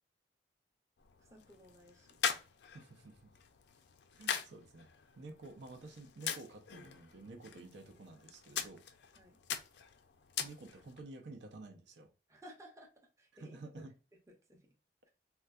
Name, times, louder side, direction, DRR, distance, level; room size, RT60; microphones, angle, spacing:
sound 1, 1.0-11.0, left 7 dB, 85° left, 0.4 m, -43 dB
voice 1, 1.2-2.1 9.2-9.4 12.3-12.9 13.2-13.8 14.5-14.6, equal, 15° right, 0.6 m, -56 dB
voice 2, 2.7-3.3 4.2-4.9 5.2-8.8 10.4-12.1 13.3-13.9, right 2 dB, 85° right, 0.6 m, -51 dB
3.7 x 2.3 x 2.3 m
head